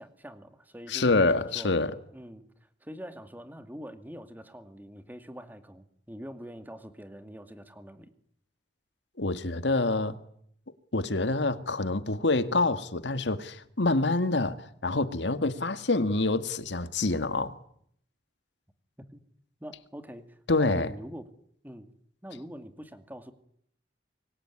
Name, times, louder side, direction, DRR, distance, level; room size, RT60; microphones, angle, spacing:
voice 1, 0.0-1.8 2.1-8.1 19.1-19.2 19.6-21.3 21.6-21.9 22.2-23.3, equal, 10° right, 2.3 m, -44 dB
voice 2, 0.9-1.9 9.2-10.2 10.9-17.5 20.5-20.9, left 2 dB, 85° left, 1.9 m, -26 dB
26.0 x 22.0 x 9.9 m
head